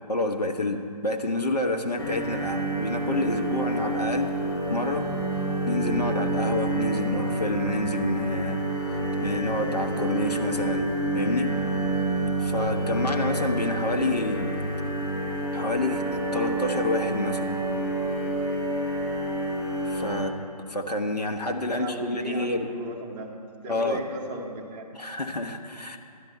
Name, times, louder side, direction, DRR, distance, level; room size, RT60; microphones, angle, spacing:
voice 1, 0.0-4.3 4.7-5.1 5.6-8.6 8.9-10.9 11.1-11.5 12.4-14.6 15.5-16.0 16.3-17.5 19.8-20.3 20.7-22.7 23.7-24.1 24.9-26.0, left 2 dB, 75° left, 4 dB, 1.2 m, -28 dB
sound 1, 2.0-20.2, right 2 dB, 35° left, 1.5 m, -28 dB
voice 2, 21.7-23.3 23.6-24.9, right 1 dB, 15° right, -1 dB, 0.8 m, -36 dB
11.5 x 9.0 x 4.3 m, 2.4 s
figure-of-eight pair, 145°, 21 cm